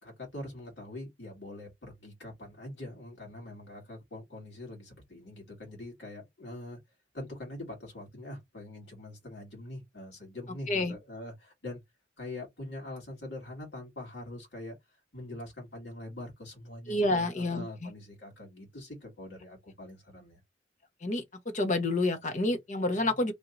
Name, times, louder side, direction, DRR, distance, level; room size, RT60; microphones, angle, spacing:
voice 1, 0.0-6.8 7.1-11.8 12.2-14.8 15.1-20.4, left 1 dB, 65° left, 2.2 m, -43 dB
voice 2, 16.9-17.9 21.0-21.2 21.5-23.3, left 2 dB, 40° left, 1.0 m, -28 dB
3.5 x 2.8 x 3.8 m
head